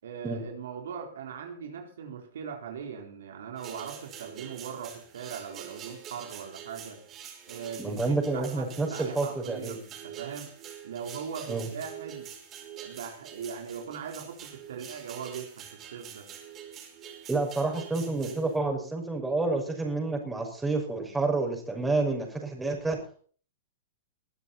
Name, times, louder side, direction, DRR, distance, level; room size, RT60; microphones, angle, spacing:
voice 1, 0.0-7.0 7.5-10.5 10.8-12.3 12.8-16.3, right 7 dB, 70° right, 3 dB, 4.3 m, -40 dB
sound 1, 3.6-18.6, right 9 dB, 30° right, 5.4 m, -45 dB
voice 2, 7.8-9.8 11.5-11.7 17.3-23.0, right 3 dB, 10° right, 2 dB, 5.9 m, -29 dB
21.5 x 12.5 x 4.3 m, 0.43 s
hypercardioid pair, 115°, 0 cm